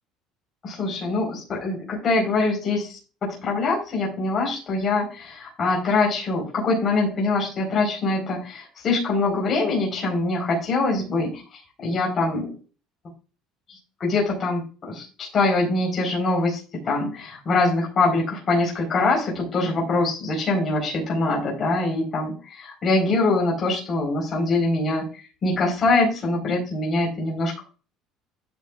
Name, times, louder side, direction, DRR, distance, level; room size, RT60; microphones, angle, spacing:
voice 1, 0.6-11.3 11.8-12.5 13.7-25.1 25.4-27.7, left 3 dB, 35° left, -1 dB, 4.3 m, -24 dB
12.0 x 7.8 x 2.4 m, 0.34 s
cardioid pair, 150°, 0 cm